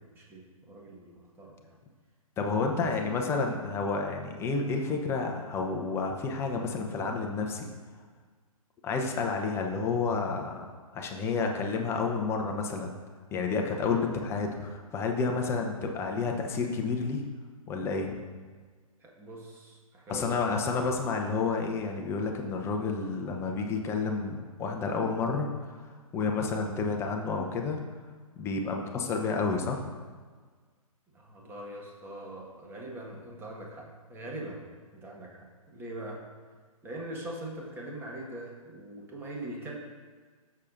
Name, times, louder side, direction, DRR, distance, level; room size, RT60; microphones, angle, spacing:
voice 1, 0.0-1.8 2.6-3.1 19.0-20.7 31.1-36.2 36.8-39.8, right 1 dB, 10° right, -2 dB, 1.5 m, -42 dB
voice 2, 2.4-7.7 8.8-10.6 10.9-13.0 13.3-17.2 17.7-18.2 20.1-25.5 25.8-27.8 28.4-29.8, left 4 dB, 15° left, 2 dB, 0.9 m, -30 dB
15.0 x 6.7 x 2.6 m, 1.5 s
figure-of-eight pair, 125°, 19 cm